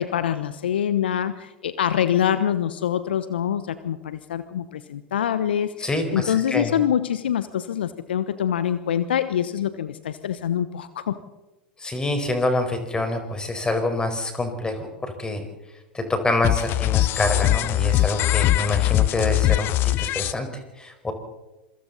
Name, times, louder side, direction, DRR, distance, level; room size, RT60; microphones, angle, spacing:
voice 1, 0.0-11.2, left 9 dB, 75° left, 13 dB, 1.0 m, -25 dB
voice 2, 5.8-6.7 11.8-15.4 15.9-20.5 20.8-21.1, left 2 dB, 15° left, 6 dB, 4.8 m, -26 dB
sound 1, 16.4-20.3, left 16 dB, 40° left, 0.6 m, -21 dB
27.0 x 24.0 x 4.1 m, 1.1 s
figure-of-eight pair, 90°, 6 cm